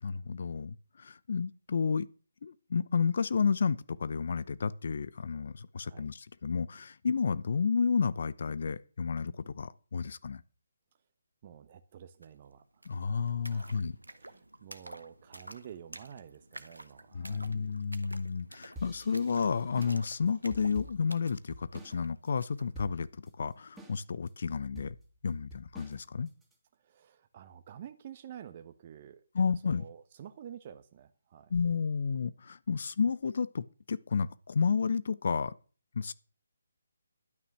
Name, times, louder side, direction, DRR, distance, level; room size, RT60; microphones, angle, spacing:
voice 1, 0.0-2.1 2.4-10.4 12.8-14.0 17.1-25.0 25.2-26.3 29.3-29.8 31.5-35.5 35.9-36.1, left 5 dB, 50° left, 0.8 m, -31 dB
voice 2, 11.4-12.6 13.5-13.8 14.1-17.5 26.8-31.5, right 9 dB, 35° right, 1.2 m, -50 dB
sound 1, 12.2-12.3 12.5-22.7, right 1 dB, 80° right, 1.4 m, -51 dB
sound 2, 18.8-22.0 22.3-22.4 22.7-23.3 23.8-24.3 24.8-26.5, equal, 5° right, 2.5 m, -48 dB
12.0 x 9.5 x 6.0 m
figure-of-eight pair, 145°, 0 cm